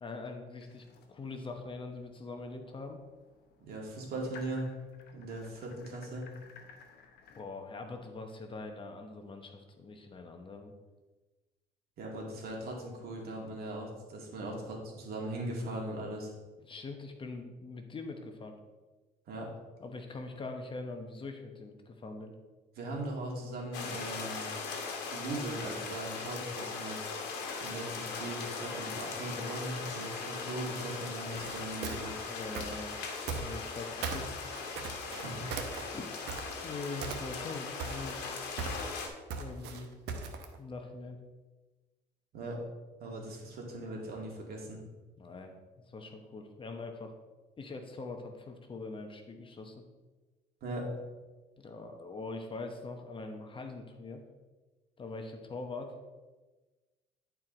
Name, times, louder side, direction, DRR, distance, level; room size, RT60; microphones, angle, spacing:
voice 1, 0.0-3.0 7.3-10.7 16.7-18.5 19.8-22.3 32.3-33.0 33.3-34.4 35.9-36.3 36.6-38.3 39.4-39.9 40.6-41.2 45.2-45.5 45.9-47.1 47.6-49.8 51.6-54.2 55.0-55.9, left 3 dB, 30° left, 4 dB, 1.0 m, -43 dB
sound 1, 0.6-7.4, left 5 dB, 70° left, 1.1 m, -57 dB
voice 2, 3.6-4.7 5.1-6.3 12.0-16.3 19.3-19.5 22.8-24.5 25.1-27.1 27.6-32.2 35.2-35.5 42.3-42.6 43.0-44.8 50.6-50.9, right 1 dB, 65° right, -1 dB, 2.2 m, -39 dB
sound 2, 23.7-39.1, left 4 dB, 90° left, 1.3 m, -39 dB
sound 3, 31.3-33.8 34.0-36.7 37.0-37.5 37.8-40.6, right 5 dB, 80° right, 1.0 m, -39 dB
10.5 x 4.6 x 3.9 m, 1.2 s
cardioid pair, 110°, 17 cm